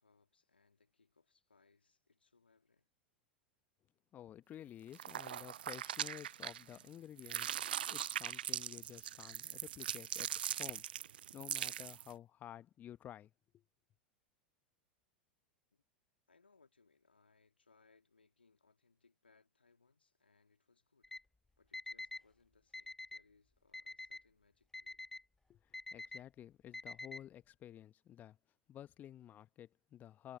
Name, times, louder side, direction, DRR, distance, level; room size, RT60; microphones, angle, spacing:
voice 1, 0.0-2.9 15.7-15.8 16.3-21.1 21.6-25.0, left 4 dB, 80° left, 3.2 m, -72 dB
voice 2, 4.1-10.9 11.3-13.6 25.5-25.6 25.9-28.4 28.7-30.4, left 11 dB, 30° left, 1.3 m, -52 dB
sound 1, 4.9-6.9 7.2-12.1, right 11 dB, 65° right, 0.5 m, -41 dB
Alarm, 21.0-21.2 21.7-22.2 22.7-23.2 23.7-24.2 24.7-25.2 25.7-26.2 26.7-27.2, left 2 dB, 5° left, 0.4 m, -46 dB
figure-of-eight pair, 90°, 6 cm